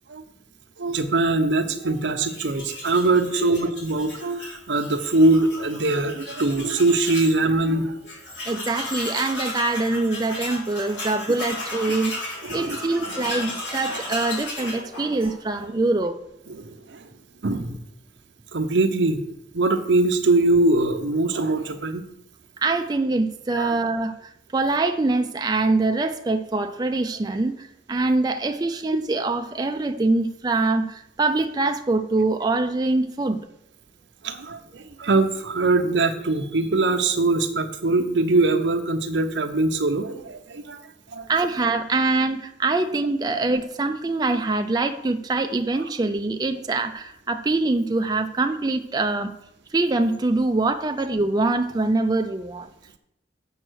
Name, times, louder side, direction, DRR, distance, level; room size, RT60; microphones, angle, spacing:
voice 1, 0.8-8.0 12.4-12.8 16.5-17.0 17.4-17.8 18.5-19.2 19.5-22.0 23.5-23.7 34.2-40.8 41.1-41.2, right 2 dB, 80° right, 7 dB, 0.8 m, -22 dB
Tools, 2.3-7.4 7.7-7.8 8.1-15.7, left 2 dB, 85° left, 3.0 m, -34 dB
voice 2, 8.5-16.2 22.6-33.4 41.3-49.3 49.7-52.7, right 3 dB, 20° right, 7 dB, 0.4 m, -24 dB
7.8 x 5.4 x 6.2 m, 0.81 s
head